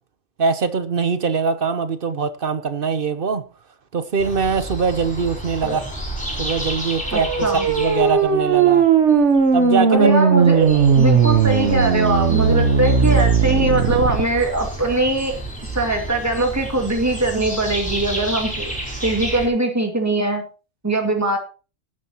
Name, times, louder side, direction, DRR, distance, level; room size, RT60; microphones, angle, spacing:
voice 1, 0.4-3.5 3.9-5.8 6.4-8.9 9.5-10.9, right 5 dB, 55° right, 1.0 m, -23 dB
sound 1, 4.2-9.7 10.2-10.3 10.4-19.5, right 1 dB, 5° left, 4.1 m, -31 dB
voice 2, 7.1-7.7 9.9-15.4 15.6-18.7 19.0-20.4 20.8-21.4, right 2 dB, 15° right, 2.2 m, -21 dB
sound 2, 7.1-14.2, right 6 dB, 85° right, 1.5 m, -17 dB
17.5 x 9.3 x 3.0 m
omnidirectional pair, 1.2 m